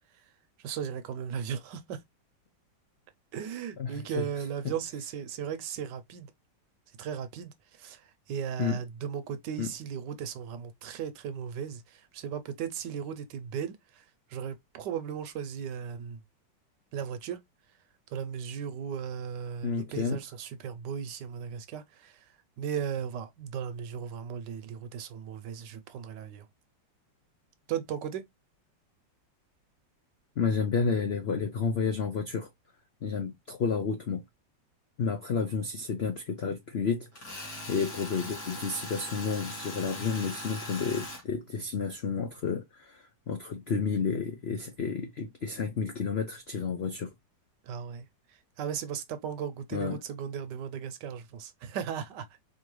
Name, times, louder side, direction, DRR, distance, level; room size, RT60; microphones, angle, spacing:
voice 1, 0.6-2.0 3.3-6.3 7.0-7.5 7.8-8.0 8.3-13.8 14.3-16.2 16.9-17.4 18.1-22.2 22.6-26.4 27.7-28.2 47.7-48.1 48.6-52.3, right 8 dB, 75° right, 1.3 m, -36 dB
voice 2, 3.8-4.3 4.6-4.7 8.6-8.8 9.6-9.7 19.6-20.2 30.4-32.5 33.0-34.2 35.0-47.1 49.7-50.0, left 5 dB, 75° left, 0.5 m, -31 dB
Tools, 37.2-41.2, left 1 dB, 55° left, 2.1 m, -40 dB
4.5 x 2.8 x 3.1 m
omnidirectional pair, 2.0 m